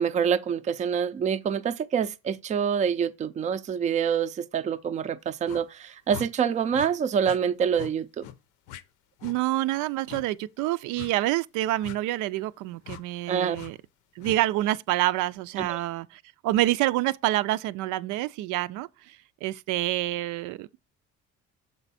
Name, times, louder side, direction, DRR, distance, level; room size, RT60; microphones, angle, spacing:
voice 1, 0.0-8.2 13.3-13.6 15.6-15.8, right 7 dB, 25° right, 0.4 m, -26 dB
sound 1, 5.4-5.6 6.1-6.3 6.7-6.9 7.2-7.4 7.7-7.9 8.2-8.4 8.7-8.8 9.2-9.4 10.1-10.2 11.0-11.1 11.8-12.0 12.8-13.0 13.5-13.7 14.2-14.4, left 10 dB, 80° left, 0.7 m, -41 dB
voice 2, 9.2-13.8 14.2-20.7, right 15 dB, 85° right, 0.5 m, -27 dB
6.7 x 4.5 x 4.1 m
cardioid pair, 155°, 30 cm